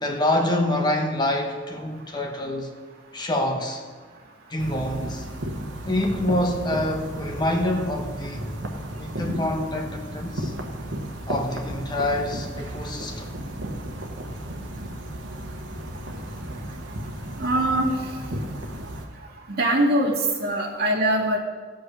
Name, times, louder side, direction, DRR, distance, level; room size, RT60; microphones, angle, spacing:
voice 1, 0.0-2.7 3.1-3.8 4.5-5.3 5.9-8.5 9.0-10.5 11.3-13.3, left 1 dB, 20° left, 1.2 m, -26 dB
sound 1, 4.6-19.1, right 1 dB, 75° right, 1.3 m, -34 dB
voice 2, 17.4-18.0 19.5-21.4, right 1 dB, 50° right, 2.3 m, -22 dB
15.5 x 5.3 x 6.2 m
head